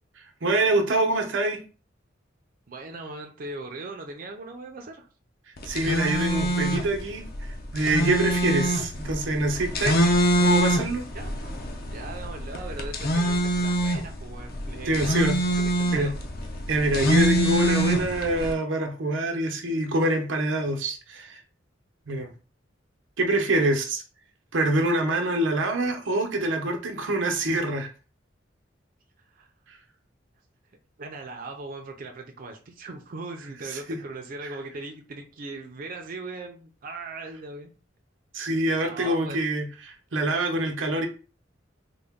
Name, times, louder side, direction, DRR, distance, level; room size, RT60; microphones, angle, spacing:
voice 1, 0.4-1.6 5.6-7.2 7.7-10.0 10.4-11.0 14.9-15.4 15.9-16.1 16.7-21.4 22.1-22.3 23.2-24.0 24.5-27.9 33.7-34.0 34.4-34.5 38.3-41.1, right 1 dB, 85° right, 4 dB, 0.7 m, -25 dB
voice 2, 2.7-5.1 11.1-11.6 11.9-15.0 15.6-16.1 29.4-29.5 31.0-37.7 38.8-39.4, right 3 dB, 50° right, 3 dB, 0.5 m, -39 dB
sound 1, 5.6-18.5, right 1 dB, 55° left, 0.6 m, -25 dB
3.8 x 2.1 x 3.5 m, 0.36 s
head